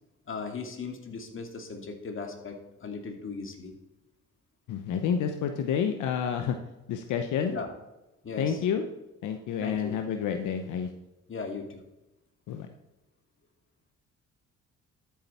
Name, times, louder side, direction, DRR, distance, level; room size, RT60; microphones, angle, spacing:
voice 1, 0.3-3.8 7.5-7.7 8.2-8.6 9.6-10.0 11.3-11.8, left 4 dB, 40° left, 4 dB, 2.3 m, -38 dB
voice 2, 4.7-6.6 6.9-7.5 8.4-8.8 9.2-10.9 12.5-12.7, left 7 dB, 85° left, 6 dB, 0.9 m, -29 dB
12.5 x 7.6 x 4.3 m, 0.97 s
cardioid pair, 90°, 30 cm